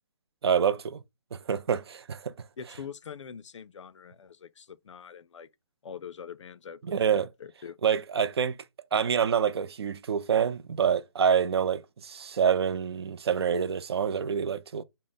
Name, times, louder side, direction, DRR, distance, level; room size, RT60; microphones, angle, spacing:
voice 1, 0.4-1.0 1.3-2.3 6.8-7.3 7.8-8.6 8.9-14.8, right 7 dB, 60° right, 0.4 m, -26 dB
voice 2, 2.6-5.5 5.8-7.8, left 7 dB, 85° left, 0.4 m, -44 dB
3.7 x 2.0 x 3.9 m
hypercardioid pair, 165°, 15 cm